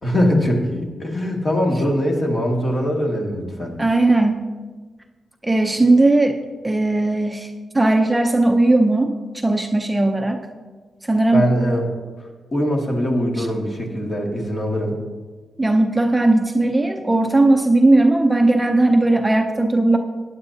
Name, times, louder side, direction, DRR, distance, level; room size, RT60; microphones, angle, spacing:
voice 1, 0.0-3.7 11.3-11.8 12.5-15.0, equal, 35° left, 0 dB, 2.1 m, -21 dB
voice 2, 3.8-4.4 5.4-6.4 6.6-10.5 11.0-11.5 13.4-13.5 15.6-20.0, right 2 dB, 15° right, 4 dB, 0.6 m, -17 dB
15.5 x 9.7 x 2.8 m, 1.4 s
cardioid pair, 100°, 0 cm